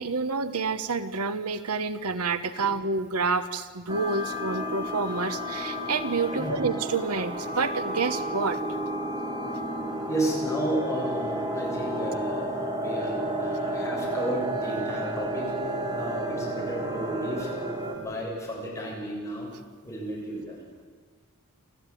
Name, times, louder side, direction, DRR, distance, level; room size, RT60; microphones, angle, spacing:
voice 1, 0.0-8.6, right 4 dB, 80° right, 12 dB, 1.1 m, -28 dB
sound 1, 3.9-17.9, right 1 dB, 20° right, 3.5 m, -31 dB
voice 2, 10.1-15.5 15.9-17.5 17.9-19.5 19.8-20.6, right 1 dB, 15° left, -3 dB, 7.7 m, -32 dB
28.5 x 14.0 x 9.2 m, 1.5 s
head